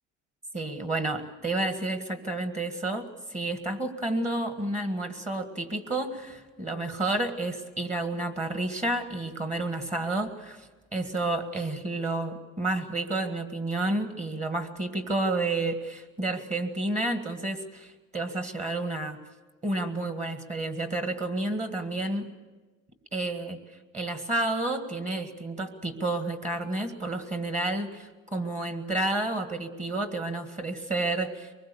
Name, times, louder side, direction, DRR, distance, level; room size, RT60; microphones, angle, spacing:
voice 1, 0.5-19.2 19.6-22.3 23.1-23.6 23.9-31.5, right 2 dB, 20° right, 7 dB, 1.7 m, -30 dB
24.0 x 20.5 x 7.0 m, 1.2 s
cardioid pair, 135°, 33 cm